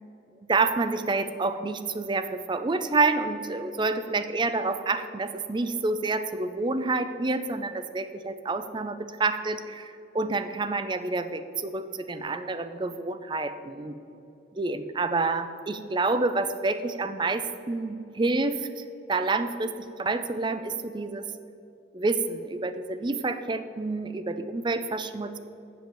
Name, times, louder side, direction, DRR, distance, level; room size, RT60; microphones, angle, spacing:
voice 1, 0.5-14.0 14.6-21.2 21.9-25.4, right 3 dB, 25° right, 11 dB, 0.4 m, -28 dB
7.6 x 7.0 x 7.7 m, 2.8 s
head